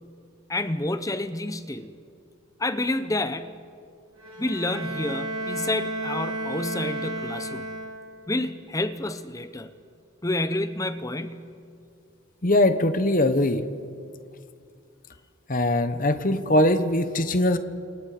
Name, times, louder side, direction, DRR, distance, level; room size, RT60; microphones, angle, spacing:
voice 1, 0.5-1.9 2.6-3.6 4.4-7.7 8.3-9.7 10.2-11.5, left 2 dB, 15° left, 11 dB, 0.8 m, -29 dB
Bowed string instrument, 4.2-8.3, right 1 dB, 85° right, 2.6 m, -33 dB
voice 2, 12.4-13.7 15.5-17.6, left 1 dB, 40° left, 10 dB, 1.1 m, -21 dB
29.5 x 27.5 x 5.0 m, 2.3 s
head